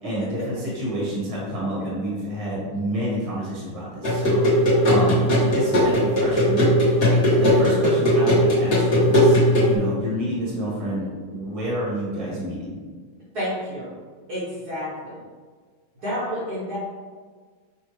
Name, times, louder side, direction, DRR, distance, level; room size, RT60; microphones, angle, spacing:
voice 1, 0.0-12.8, right 1 dB, 20° right, -7 dB, 1.1 m, -29 dB
sound 1, 4.0-9.8, equal, 35° left, 1.2 m, -18 dB
voice 2, 13.3-13.9 14.3-15.2 15.9-16.8, equal, 55° right, -9 dB, 1.4 m, -30 dB
5.4 x 2.4 x 3.1 m, 1.5 s
omnidirectional pair, 2.3 m